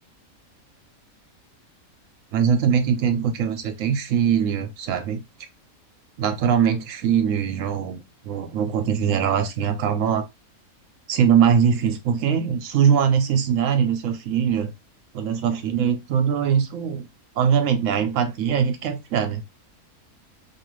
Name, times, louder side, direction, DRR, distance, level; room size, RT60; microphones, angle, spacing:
voice 1, 2.3-5.2 6.2-10.3 11.1-14.7 15.1-17.1 17.4-19.4, right 8 dB, 70° right, 0.9 m, -22 dB
2.6 x 2.4 x 3.0 m
omnidirectional pair, 1.5 m